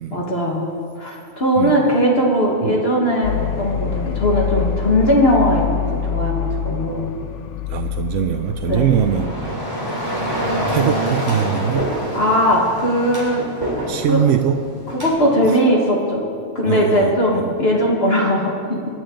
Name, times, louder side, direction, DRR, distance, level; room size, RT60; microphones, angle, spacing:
voice 1, 0.1-0.7 1.0-7.1 8.7-8.9 12.1-13.5 14.1-14.3 15.0-16.2 16.6-18.8, equal, 55° left, -2 dB, 2.0 m, -19 dB
voice 2, 1.6-2.0 2.6-2.8 7.7-9.7 10.7-11.9 13.9-14.6 15.4-15.6 16.6-17.6, right 9 dB, 85° right, 7 dB, 1.0 m, -22 dB
sound 1, 3.2-9.3, left 8 dB, 80° left, 0.9 m, -25 dB
sound 2, 8.5-15.1, equal, 15° right, 3.4 m, -26 dB
25.0 x 10.5 x 3.8 m, 2.3 s
omnidirectional pair, 1.3 m